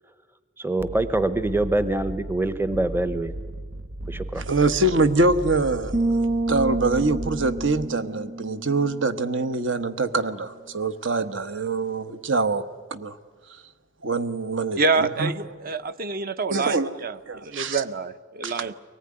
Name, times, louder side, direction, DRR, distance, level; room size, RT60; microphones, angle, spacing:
voice 1, 0.6-3.3 4.1-4.4, right 2 dB, 10° right, 0.7 m, -25 dB
sound 1, 0.8-7.9, right 1 dB, 85° right, 1.0 m, -36 dB
voice 2, 4.4-5.9 6.5-12.6 12.9-13.2 14.0-15.3 16.5-16.9 17.3-17.8 18.4-18.7, right 3 dB, 70° right, 1.2 m, -24 dB
sound 2, 5.9-9.6, right 2 dB, 30° right, 2.3 m, -29 dB
voice 3, 14.8-18.7, right 4 dB, 50° right, 0.8 m, -27 dB
23.5 x 19.0 x 9.8 m
head